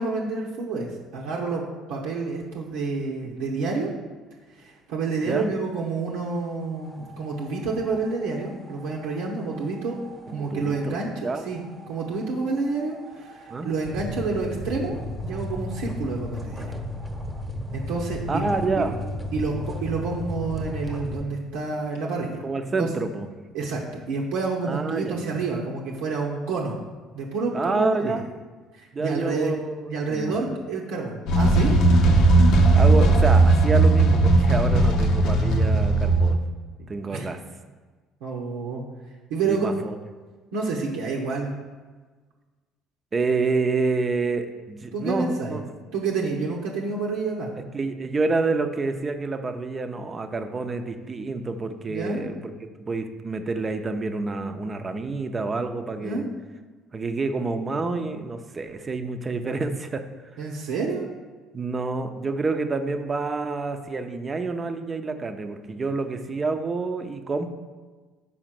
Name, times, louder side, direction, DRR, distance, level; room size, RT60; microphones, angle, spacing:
voice 1, 0.0-1.6 1.9-3.9 4.6-10.0 10.3-11.1 11.4-15.0 15.2-16.7 17.7-18.5 18.8-18.9 19.3-22.4 22.8-22.9 23.5-26.8 27.1-28.2 28.7-29.6 29.9-31.9 36.8-37.3 38.2-38.8 39.3-39.7 40.5-41.5 44.9-45.6 45.9-47.5 51.9-52.2 56.0-56.3 60.4-61.1, right 4 dB, 80° right, -3 dB, 0.9 m, -29 dB
voice 2, 5.2-5.6 10.3-11.0 11.2-11.4 13.5-13.8 18.3-19.0 22.4-23.3 24.6-25.2 27.5-28.2 28.9-29.8 30.1-30.4 32.7-36.4 36.9-37.4 39.4-40.0 43.1-45.6 47.7-52.4 52.8-56.2 56.9-60.0 61.5-67.5, right 3 dB, 30° right, 7 dB, 0.7 m, -28 dB
sound 1, 6.8-21.2, left 1 dB, ahead, 1.1 m, -36 dB
sound 2, 31.3-36.3, right 2 dB, 70° left, 0.7 m, -17 dB
5.0 x 4.2 x 5.8 m, 1.3 s
supercardioid pair, 70°, 0 cm